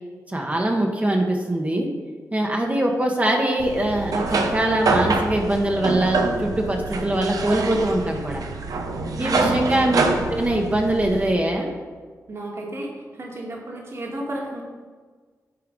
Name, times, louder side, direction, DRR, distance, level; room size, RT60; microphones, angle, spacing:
voice 1, 0.3-1.9 2.3-8.4 9.2-10.0 10.3-11.7, right 1 dB, 25° right, 1 dB, 1.1 m, -22 dB
sound 1, 3.6-11.3, right 3 dB, 70° right, 0.8 m, -26 dB
voice 2, 9.2-9.8 12.3-12.9 13.2-14.6, right 1 dB, 45° right, -2 dB, 1.9 m, -33 dB
9.5 x 4.7 x 5.2 m, 1.5 s
cardioid pair, 85°, 6 cm